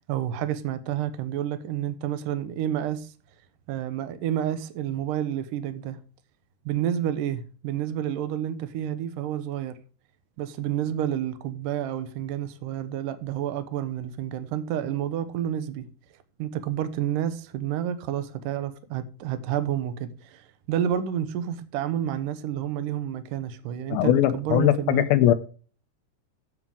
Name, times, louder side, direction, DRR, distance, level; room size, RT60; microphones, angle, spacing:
voice 1, 0.1-3.1 3.7-6.0 6.7-9.8 10.4-15.9 16.4-25.1, right 10 dB, 70° right, 2.2 m, -29 dB
voice 2, 23.9-25.3, left 13 dB, 80° left, 2.3 m, -20 dB
15.0 x 5.8 x 3.5 m
omnidirectional pair, 4.8 m